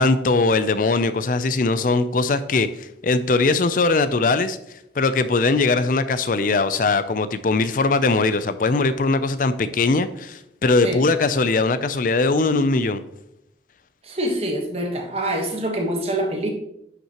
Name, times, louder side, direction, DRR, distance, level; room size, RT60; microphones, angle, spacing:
voice 1, 0.0-4.6 5.0-13.0, left 3 dB, 45° left, 12 dB, 0.5 m, -20 dB
voice 2, 14.0-16.5, right 1 dB, 35° right, 2 dB, 1.3 m, -25 dB
11.0 x 5.7 x 3.0 m, 0.80 s
head